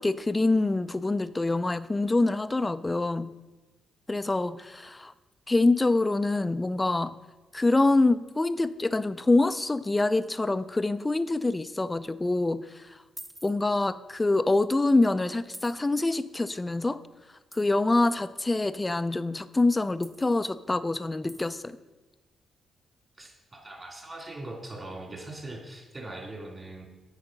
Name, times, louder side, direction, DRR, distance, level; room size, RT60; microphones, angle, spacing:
voice 1, 0.0-3.3 4.1-5.1 5.5-7.1 7.5-13.0 13.4-17.0 17.5-21.8, left 2 dB, 25° left, 14 dB, 0.4 m, -25 dB
sound 1, 13.2-13.5 14.5-14.6 15.5-15.8 17.5-17.7 20.0-20.4 21.3-21.5, right 1 dB, 15° right, 0.8 m, -46 dB
voice 2, 23.2-26.9, right 2 dB, 30° right, -1 dB, 3.0 m, -41 dB
8.7 x 4.9 x 5.3 m, 1.2 s
hypercardioid pair, 45°, 0 cm